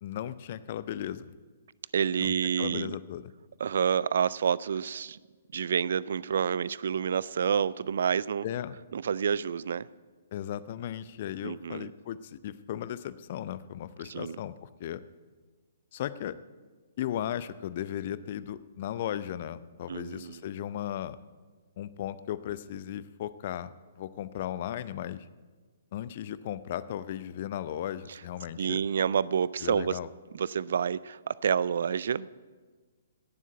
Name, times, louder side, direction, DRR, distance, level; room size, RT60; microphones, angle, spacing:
voice 1, 0.0-1.4 2.2-3.3 8.4-8.7 10.3-15.0 15.9-16.4 17.0-21.2 21.8-25.3 25.9-28.8 29.6-30.1, left 11 dB, 45° left, 16 dB, 0.6 m, -36 dB
voice 2, 1.9-3.0 3.6-5.2 5.5-8.5 8.9-9.9 11.4-11.9 14.0-14.4 19.9-20.4 28.1-28.2 28.6-30.0 30.3-32.3, right 7 dB, 55° right, 21 dB, 0.4 m, -28 dB
17.5 x 7.4 x 8.0 m, 1.4 s
figure-of-eight pair, 125°, 0 cm